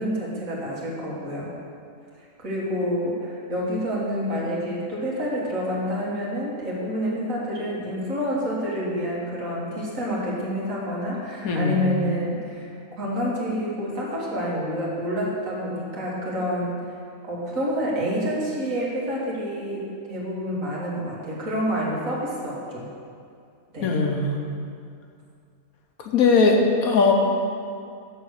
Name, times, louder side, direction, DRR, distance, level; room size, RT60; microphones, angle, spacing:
voice 1, 0.0-1.5 2.4-12.7 13.0-16.7 17.2-22.9 23.7-23.9, equal, 65° right, -5 dB, 2.1 m, -28 dB
voice 2, 11.4-11.9 23.8-24.4 26.0-27.1, left 4 dB, 75° left, 2 dB, 1.4 m, -20 dB
6.8 x 6.6 x 6.5 m, 2.4 s
omnidirectional pair, 1.6 m